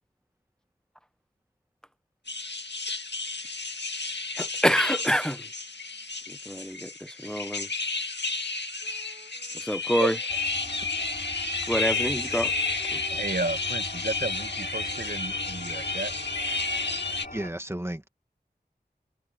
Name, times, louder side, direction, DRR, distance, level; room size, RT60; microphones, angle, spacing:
sound 1, 2.3-17.3, left 3 dB, 75° left, 1.8 m, -32 dB
voice 1, 4.4-5.5 6.3-7.7 9.5-10.1 11.7-12.5 12.9-13.0, equal, 5° left, 0.9 m, -27 dB
Wind instrument woodwind instrument, 8.8-17.3, right 2 dB, 35° right, 7.9 m, -54 dB
sound 2, 10.3-17.5, left 1 dB, 55° left, 4.8 m, -40 dB
voice 2, 13.1-16.1, right 3 dB, 60° right, 1.6 m, -33 dB
voice 3, 17.3-18.1, right 1 dB, 15° right, 1.9 m, -33 dB
wide cardioid pair, 55°, 18 cm